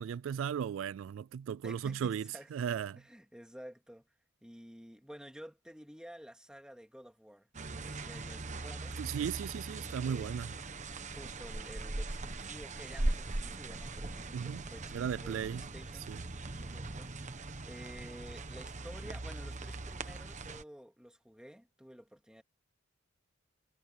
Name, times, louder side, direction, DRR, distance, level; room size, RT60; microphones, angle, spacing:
voice 1, 0.0-3.0 9.0-10.5 14.3-14.6 14.9-15.6 16.1-16.2, right 8 dB, 70° right, 0.3 m, -36 dB
voice 2, 1.6-2.5 3.0-4.0 4.4-9.0 9.7-10.4 11.1-16.2 16.5-22.4, equal, 5° right, 2.7 m, -52 dB
sound 1, 7.5-20.6, right 2 dB, 40° right, 1.1 m, -40 dB
head